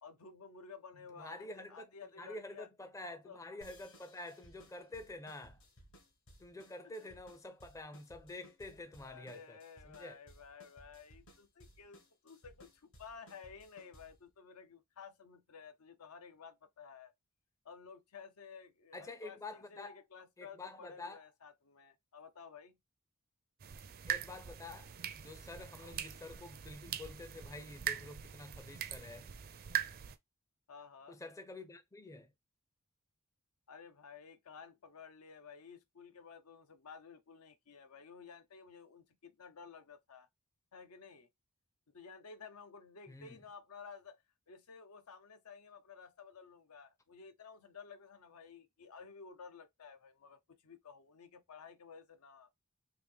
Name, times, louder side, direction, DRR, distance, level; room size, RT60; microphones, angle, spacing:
voice 1, 0.0-2.7 3.2-3.4 6.8-7.1 9.0-17.1 17.6-22.8 25.8-26.1 30.7-31.2 33.7-40.3 40.7-41.3 41.9-44.2 44.5-52.5, left 5 dB, 85° left, 0.7 m, -54 dB
voice 2, 1.2-1.9 2.2-5.6 6.4-9.6 9.8-10.2 18.9-20.0 20.4-21.2 24.1-24.9 25.2-29.3 31.1-32.3 43.1-43.4, left 2 dB, 15° left, 0.4 m, -48 dB
sound 1, 3.6-14.3, equal, 60° left, 1.4 m, -61 dB
sound 2, 23.6-30.2, right 9 dB, 45° right, 0.4 m, -42 dB
3.6 x 2.9 x 3.4 m
head